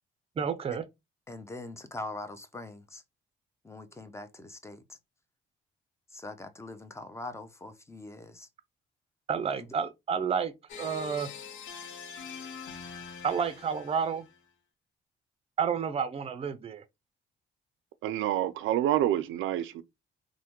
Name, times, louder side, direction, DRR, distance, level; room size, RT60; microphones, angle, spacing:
voice 1, 0.4-0.8 9.3-10.5 10.8-11.3 13.2-14.2 15.6-16.8, right 6 dB, 30° right, 0.5 m, -30 dB
voice 2, 1.3-3.0 3.6-5.0 6.1-8.5 9.6-9.7, left 2 dB, 15° left, 0.6 m, -42 dB
sound 1, 10.7-14.4, left 6 dB, 80° left, 0.7 m, -44 dB
voice 3, 18.0-19.8, right 12 dB, 80° right, 0.4 m, -27 dB
3.3 x 2.2 x 3.0 m
cardioid pair, 90°, 20 cm